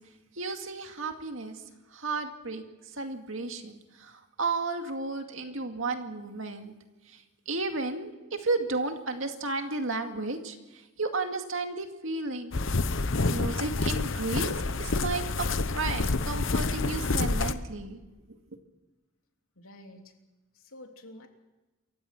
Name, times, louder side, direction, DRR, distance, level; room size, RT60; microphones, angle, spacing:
voice 1, 0.3-1.6 1.9-2.6 2.9-6.7 7.1-12.6 13.3-14.5 14.8-15.5 15.7-18.0 18.3-18.4, right 3 dB, 70° right, 5 dB, 2.3 m, -33 dB
sound 1, 12.5-17.5, left 3 dB, 65° left, 1.0 m, -28 dB
voice 2, 19.6-20.1 20.5-21.3, left 1 dB, 85° left, 3 dB, 3.3 m, -49 dB
28.0 x 15.5 x 6.1 m, 1.1 s
head